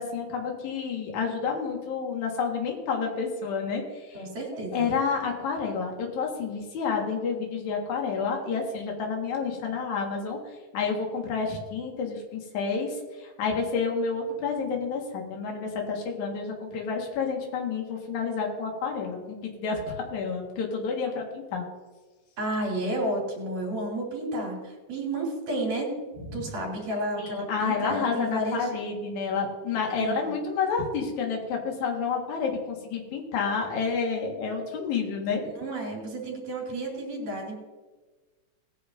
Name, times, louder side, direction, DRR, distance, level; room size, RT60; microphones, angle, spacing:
voice 1, 0.0-4.3 4.5-21.6 26.3-26.5 27.2-35.4, left 5 dB, 65° left, 0 dB, 3.0 m, -30 dB
voice 2, 4.1-4.9 22.4-25.9 26.3-28.7 30.0-30.4 35.4-37.5, right 1 dB, 70° right, -2 dB, 4.8 m, -31 dB
19.0 x 10.0 x 2.7 m, 1.3 s
omnidirectional pair, 3.7 m